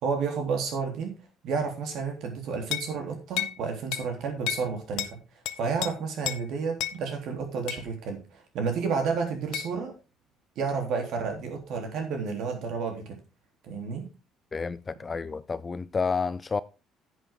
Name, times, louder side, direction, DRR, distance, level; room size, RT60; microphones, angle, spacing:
voice 1, 0.0-1.2 1.4-5.2 5.6-9.9 10.6-13.2 13.6-14.1, right 5 dB, 65° right, 3.5 m, -31 dB
sound 1, 2.7-2.9 3.4-3.6 3.9-4.1 4.5-4.7 5.0-5.1 5.5-5.9 6.3-6.4 6.8-7.0 7.7-7.8 9.5-9.7, left 14 dB, 90° left, 0.8 m, -31 dB
voice 2, 14.5-16.6, left 5 dB, 20° left, 0.5 m, -30 dB
10.5 x 8.2 x 3.8 m
cardioid pair, 150°, 0 cm